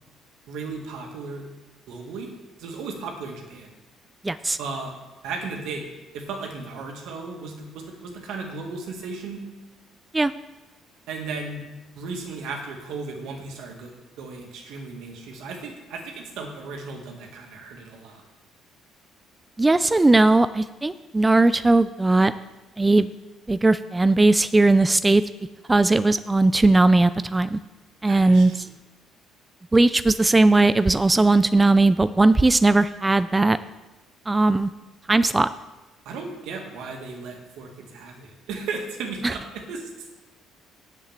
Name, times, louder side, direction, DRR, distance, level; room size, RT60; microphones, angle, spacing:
voice 1, 0.5-1.4 1.9-2.3 2.6-3.7 4.6-4.9 5.2-5.8 6.1-9.4 11.1-11.6 12.0-13.9 14.2-18.2 28.1-28.7 36.1-40.1, right 4 dB, 80° right, 2 dB, 2.1 m, -35 dB
voice 2, 4.2-4.6 10.1-10.3 19.6-22.3 22.8-23.1 23.5-25.2 25.7-27.6 28.0-28.6 29.7-33.6 34.3-34.7 35.1-35.5 39.2-39.3, right 2 dB, 15° right, 13 dB, 0.3 m, -18 dB
7.5 x 7.2 x 8.1 m, 1.1 s
cardioid pair, 105°, 0 cm